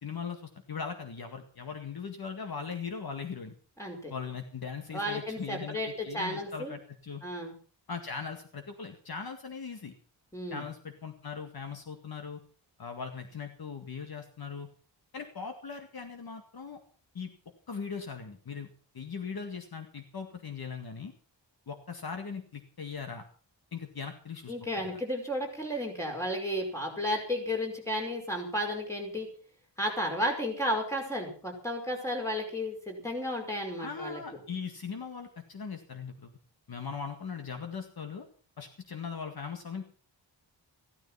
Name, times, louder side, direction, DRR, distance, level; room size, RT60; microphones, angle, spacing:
voice 1, 0.0-3.5 4.1-7.2 7.9-9.9 10.5-12.4 12.8-14.7 15.1-16.8 17.1-17.3 17.7-18.7 18.9-21.1 21.7-23.2 23.7-25.0 33.8-36.3 36.7-38.3 38.6-39.8, left 5 dB, 55° left, 5 dB, 2.0 m, -39 dB
voice 2, 3.8-4.1 4.9-6.7 7.2-7.5 10.3-10.6 24.5-29.3 29.8-34.2, equal, 5° left, 1 dB, 5.3 m, -33 dB
15.5 x 13.5 x 5.8 m, 0.41 s
wide cardioid pair, 165°, 44 cm